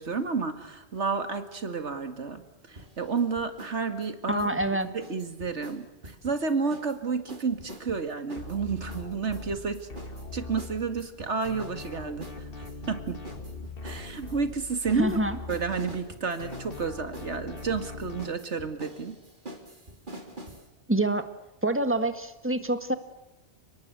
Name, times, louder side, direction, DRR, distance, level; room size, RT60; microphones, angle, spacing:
voice 1, 0.0-2.4 2.7-4.5 4.9-9.9 10.3-13.2 13.8-15.2 15.5-19.2, right 5 dB, 80° right, 8 dB, 2.3 m, -31 dB
sound 1, 2.8-3.8 4.0-7.0 7.3-20.7, right 1 dB, 45° right, 3.4 m, -45 dB
voice 2, 4.3-4.9 15.0-15.4 20.9-21.3 21.6-22.9, right 1 dB, 10° right, 9 dB, 1.7 m, -26 dB
sound 2, 8.4-11.1 11.4-16.1 16.4-18.2, left 3 dB, 55° left, 1.9 m, -41 dB
30.0 x 19.0 x 8.2 m, 0.95 s
omnidirectional pair, 1.2 m